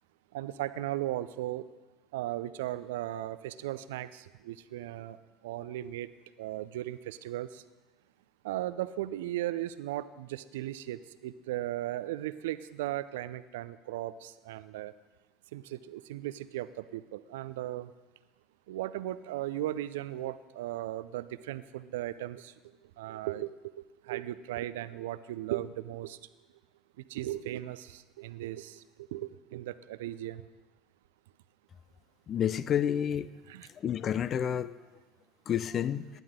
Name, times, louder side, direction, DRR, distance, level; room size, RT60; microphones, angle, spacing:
voice 1, 0.3-1.7 2.1-5.2 5.4-6.1 6.4-7.6 8.4-14.9 15.5-17.9 18.7-22.5 23.0-23.5 24.0-26.2 27.1-28.8 29.1-30.4 33.5-33.7, right 14 dB, 70° right, 15 dB, 0.5 m, -36 dB
voice 2, 32.3-33.3 33.8-34.8 35.5-36.0, left 9 dB, 40° left, 15 dB, 0.7 m, -29 dB
19.5 x 11.5 x 3.7 m, 1.2 s
figure-of-eight pair, 65°, 0 cm